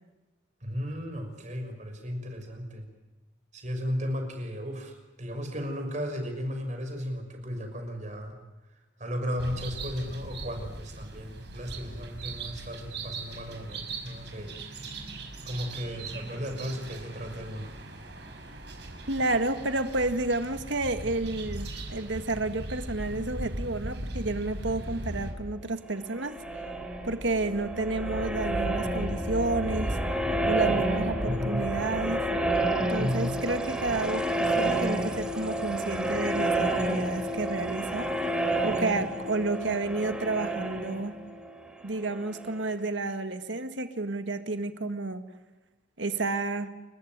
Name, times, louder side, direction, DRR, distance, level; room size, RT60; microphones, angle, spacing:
voice 1, 0.6-2.9 3.5-8.4 9.0-14.5 15.5-17.8 31.2-31.7 33.0-33.3, equal, 40° right, 5 dB, 6.1 m, -35 dB
sound 1, 9.4-25.3, right 2 dB, 65° right, 5.6 m, -39 dB
voice 2, 19.1-26.4 27.0-30.0 30.5-32.2 32.9-38.1 38.6-41.2 41.8-45.2 46.0-46.7, right 2 dB, 80° right, 8 dB, 1.9 m, -30 dB
sound 2, 26.0-42.6, right 1 dB, 5° right, 3.7 m, -30 dB
30.0 x 15.0 x 9.6 m, 1.1 s
head